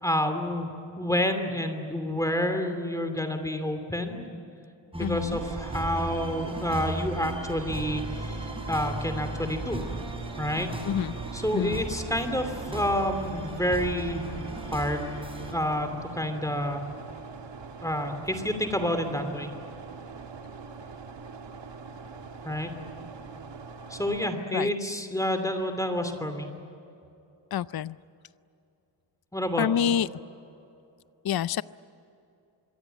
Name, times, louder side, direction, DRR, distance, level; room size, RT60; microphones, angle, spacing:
voice 1, 0.0-0.7 1.0-4.3 4.9-9.8 10.4-10.7 11.3-14.2 14.6-15.1 15.5-16.8 17.8-19.5 22.4-22.7 23.9-26.5 29.3-29.7, left 1 dB, 5° left, 7 dB, 2.8 m, -29 dB
sound 1, 4.9-15.5, right 1 dB, 10° right, 4.6 m, -37 dB
voice 2, 5.0-5.4 10.9-11.1 11.5-11.8 24.5-24.7 27.5-28.0 29.6-30.1 31.2-31.6, left 9 dB, 55° left, 17 dB, 0.6 m, -27 dB
sound 2, 5.3-24.3, right 5 dB, 75° right, 1.8 m, -42 dB
26.5 x 22.5 x 9.2 m, 2.7 s
wide cardioid pair, 135°, 44 cm